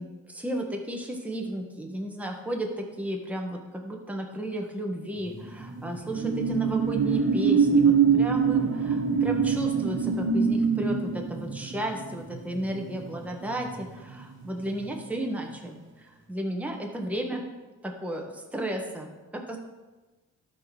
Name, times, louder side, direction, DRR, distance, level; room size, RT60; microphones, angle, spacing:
voice 1, 0.0-17.4 17.8-19.6, right 1 dB, 5° right, 1 dB, 1.5 m, -33 dB
sound 1, 5.2-14.2 14.6-14.8, right 6 dB, 40° right, 1.8 m, -25 dB
12.0 x 4.3 x 6.2 m, 1.2 s
cardioid pair, 90°, 30 cm